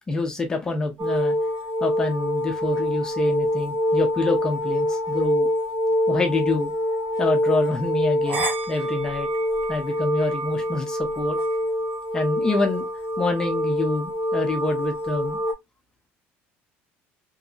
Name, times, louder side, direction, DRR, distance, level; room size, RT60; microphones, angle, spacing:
voice 1, 0.1-1.4 1.8-5.5 6.1-6.7 7.2-9.3 9.7-11.4 12.1-12.9 13.2-15.4, left 2 dB, 15° left, 0.5 m, -26 dB
sound 1, 1.0-15.5, left 1 dB, 40° right, 1.0 m, -25 dB
3.0 x 2.7 x 2.3 m
cardioid pair, 175°, 5 cm